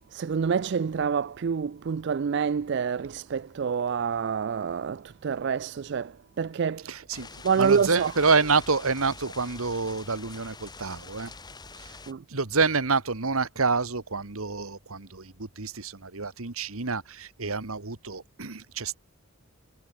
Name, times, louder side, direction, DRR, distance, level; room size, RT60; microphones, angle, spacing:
voice 1, 0.1-6.9 7.4-8.1 12.1-12.2, right 6 dB, 50° right, 0.4 m, -27 dB
voice 2, 6.8-11.3 11.8-11.9 12.3-19.0, right 4 dB, 70° right, 1.7 m, -28 dB
sound 1, 7.1-12.1, left 4 dB, 20° left, 1.6 m, -45 dB
head